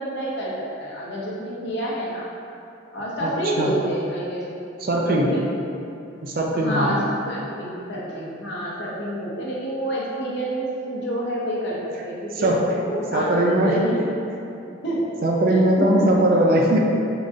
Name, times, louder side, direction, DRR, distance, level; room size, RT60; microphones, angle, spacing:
voice 1, 0.0-2.3 2.9-4.6 5.0-5.5 6.5-7.0 7.3-13.3 13.6-14.0 14.8-15.0 15.5-16.1, right 1 dB, 55° left, -6 dB, 0.8 m, -28 dB
voice 2, 3.2-3.7 4.8-5.4 6.2-7.1 12.3-12.7 13.1-14.0 15.2-16.8, right 1 dB, 45° right, -1 dB, 0.5 m, -20 dB
3.9 x 3.8 x 2.4 m, 2.8 s
head